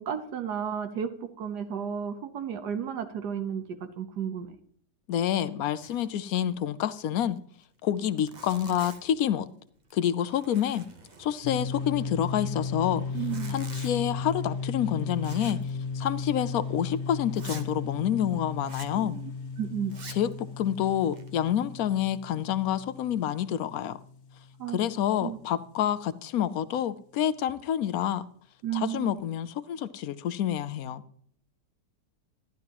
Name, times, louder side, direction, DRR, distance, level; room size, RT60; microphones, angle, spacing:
voice 1, 0.0-4.6 13.1-13.6 18.9-19.3 19.6-20.0 24.6-24.8 25.2-25.4 28.6-29.2, right 8 dB, 70° right, 1.4 m, -33 dB
voice 2, 5.1-7.4 7.8-9.5 9.9-10.8 11.2-13.0 13.5-15.6 15.9-19.2 20.1-24.0 24.7-28.2 28.7-31.0, left 10 dB, 70° left, 0.9 m, -28 dB
Zipper (clothing), 5.8-6.2 6.4-6.5 6.9-7.0 7.6-7.7 8.0-9.2 9.7-10.0 10.3-11.7 13.0-14.0 15.2-15.7 16.0-16.1 16.6-16.7 17.3-17.7 18.6-19.0 19.8-20.3 20.9-21.5, right 4 dB, 35° right, 0.8 m, -47 dB
sound 1, 11.4-24.9, left 4 dB, 45° left, 1.2 m, -35 dB
12.0 x 11.5 x 2.9 m
omnidirectional pair, 1.9 m